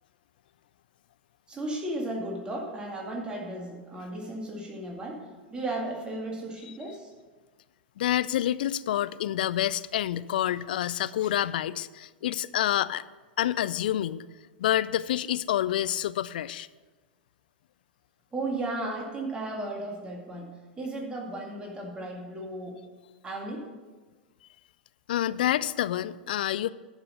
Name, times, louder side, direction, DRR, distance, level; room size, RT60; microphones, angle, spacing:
voice 1, 1.5-5.2 5.5-7.1 18.3-20.5 20.8-22.8 23.2-23.7, right 2 dB, 15° right, -1 dB, 2.2 m, -35 dB
voice 2, 8.0-13.0 13.4-14.2 14.6-16.7 25.1-26.7, left 12 dB, 60° left, 17 dB, 0.3 m, -28 dB
11.0 x 5.9 x 6.7 m, 1.3 s
figure-of-eight pair, 95°, 5 cm